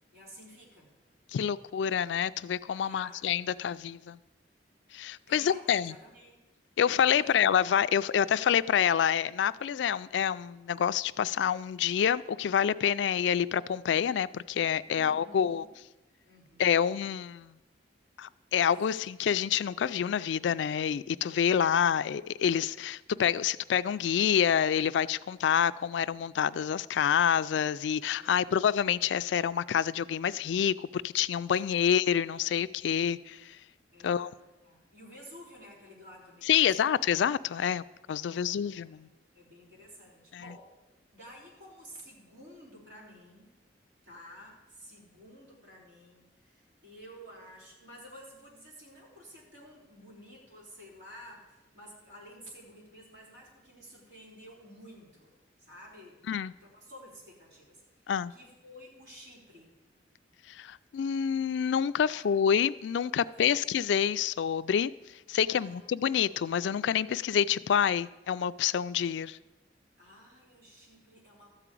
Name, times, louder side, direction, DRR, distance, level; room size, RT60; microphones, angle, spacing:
voice 1, 0.1-0.9 2.8-3.3 5.3-6.4 7.1-7.4 14.9-15.8 16.1-16.9 18.9-19.0 28.1-28.6 31.7-31.9 33.9-34.4 34.6-36.9 38.2-40.7 41.1-43.5 44.0-55.3 55.6-59.8 62.0-62.4 63.1-63.6 65.5-65.9 70.0-71.6, equal, 65° right, 3.8 m, -52 dB
voice 2, 1.3-4.2 4.9-6.0 6.8-15.6 16.6-17.5 18.2-33.6 34.0-34.3 36.5-39.1 40.3-40.4 56.3-56.5 58.1-58.3 60.5-64.9 65.3-69.4, left 8 dB, 75° left, 0.3 m, -27 dB
13.0 x 4.9 x 8.4 m
head